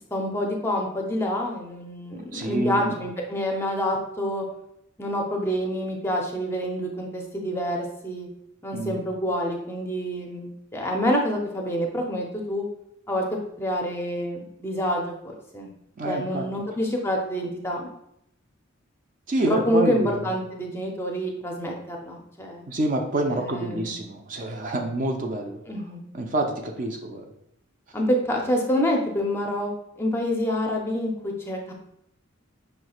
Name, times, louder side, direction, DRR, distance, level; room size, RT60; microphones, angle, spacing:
voice 1, 0.1-4.5 5.0-8.3 8.6-12.6 13.1-15.7 16.0-17.9 19.5-22.6 23.3-24.0 25.7-26.0 27.9-29.7 30.0-31.7, equal, 10° left, 0 dB, 0.5 m, -27 dB
voice 2, 2.3-2.9 8.7-9.0 16.0-16.5 19.3-20.1 22.7-25.6 26.1-27.2, right 2 dB, 40° right, 3 dB, 0.4 m, -27 dB
5.8 x 3.1 x 2.3 m, 0.78 s
head